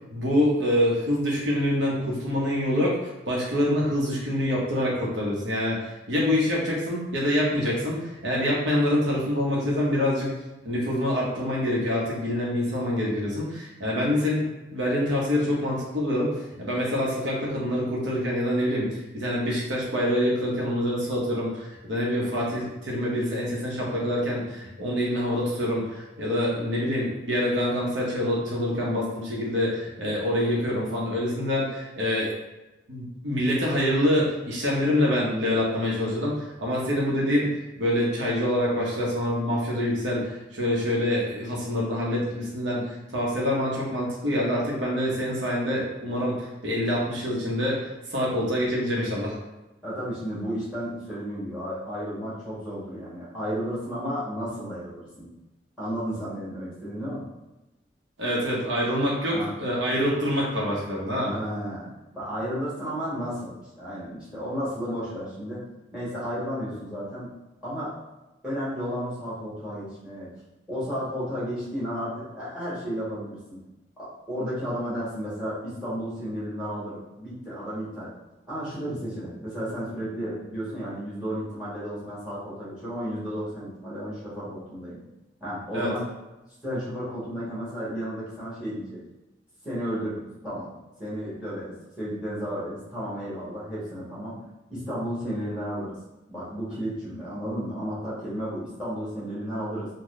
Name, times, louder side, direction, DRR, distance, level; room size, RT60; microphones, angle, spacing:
voice 1, 0.1-3.0 3.3-10.3 10.6-32.3 32.9-37.5 37.8-49.4 58.2-61.3 85.7-85.9, left 1 dB, 85° right, -4 dB, 0.9 m, -26 dB
voice 2, 49.8-55.3 55.8-57.2 59.3-59.5 61.3-61.9 62.1-65.6 65.9-67.3 67.6-67.9 68.4-70.3 70.7-73.6 74.0-78.1 78.4-85.0 85.4-86.1 86.6-89.0 89.6-90.7 91.0-94.4 94.7-96.0 96.3-99.9, equal, 5° right, -9 dB, 1.3 m, -33 dB
3.8 x 2.2 x 3.1 m, 1.0 s
head